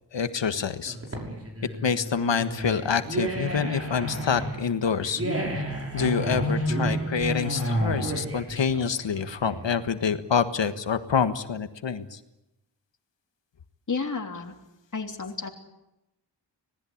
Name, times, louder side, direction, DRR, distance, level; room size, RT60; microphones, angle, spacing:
voice 1, 0.1-1.0 1.8-5.2 5.9-12.2, left 6 dB, 75° left, 11 dB, 1.6 m, -27 dB
sound 1, 0.9-9.9, equal, 30° right, 6.0 m, -30 dB
voice 2, 13.9-14.5 14.9-15.5, left 4 dB, 40° left, 3 dB, 3.2 m, -31 dB
26.0 x 19.0 x 8.8 m, 0.93 s
wide cardioid pair, 110°, 44 cm